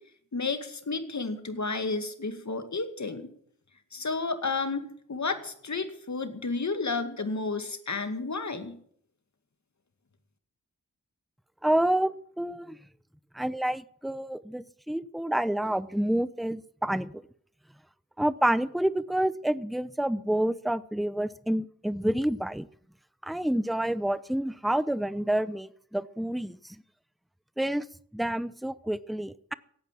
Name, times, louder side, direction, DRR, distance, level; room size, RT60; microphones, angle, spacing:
voice 1, 0.3-3.3 3.9-8.8, left 3 dB, 60° left, 8 dB, 2.2 m, -32 dB
voice 2, 11.6-12.1 12.4-12.8 13.3-17.2 18.2-22.7 23.2-26.8 27.6-27.9 28.1-29.5, right 1 dB, ahead, 17 dB, 0.7 m, -28 dB
16.5 x 9.1 x 7.6 m, 0.62 s
cardioid pair, 40°, 32 cm